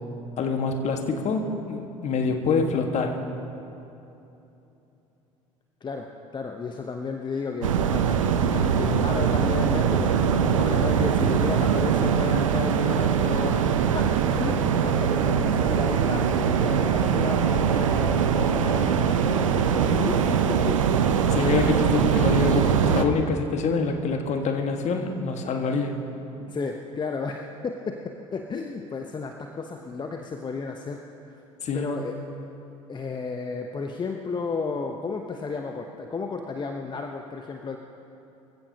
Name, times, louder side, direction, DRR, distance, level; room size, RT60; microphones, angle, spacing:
voice 1, 0.4-3.2 21.3-25.9 31.6-31.9, left 4 dB, 45° left, 4 dB, 1.7 m, -26 dB
voice 2, 6.3-20.2 20.5-21.0 21.8-22.0 26.5-31.4 31.7-32.2 32.9-37.8, left 4 dB, 25° left, 4 dB, 1.0 m, -33 dB
sound 1, 7.6-23.0, right 7 dB, 75° right, 0.8 m, -22 dB
24.5 x 16.0 x 3.0 m, 2.9 s
figure-of-eight pair, 60°, 17 cm